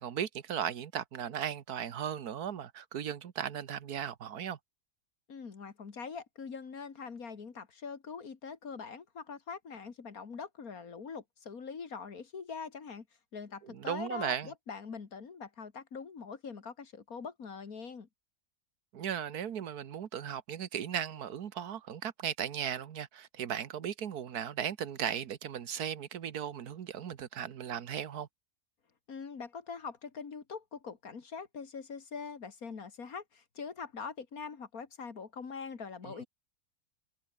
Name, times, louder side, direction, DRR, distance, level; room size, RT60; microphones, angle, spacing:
voice 1, 0.0-4.6 13.6-14.5 18.9-28.3 36.0-36.2, right 9 dB, 90° right, 1.7 m, -37 dB
voice 2, 5.3-13.1 13.3-18.1 29.1-36.3, left 5 dB, 70° left, 2.5 m, -43 dB
omnidirectional pair, 1.6 m